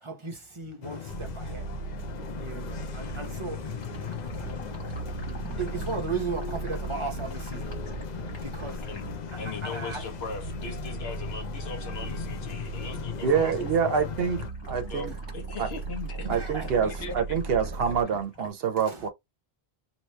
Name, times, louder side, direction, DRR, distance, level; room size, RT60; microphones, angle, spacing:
voice 1, 0.0-1.7 2.4-3.7 4.4-4.5 5.3-7.7 8.4-10.1 14.8-14.9 16.3-16.9 18.8-19.1, right 4 dB, 30° right, 0.8 m, -36 dB
sound 1, 0.8-14.5, left 9 dB, 55° left, 0.6 m, -38 dB
sound 2, 1.1-18.0, right 4 dB, 50° right, 0.5 m, -38 dB
sound 3, 2.1-12.4 12.7-13.2 13.5-18.5, left 2 dB, 25° left, 1.3 m, -47 dB
voice 2, 9.4-13.5 13.8-14.1 14.8-16.5 16.8-17.1, left 4 dB, 75° left, 1.2 m, -39 dB
voice 3, 13.2-14.4 14.7-15.1 15.6-15.7 16.2-19.1, right 6 dB, 70° right, 0.9 m, -26 dB
2.9 x 2.9 x 3.2 m
omnidirectional pair, 1.1 m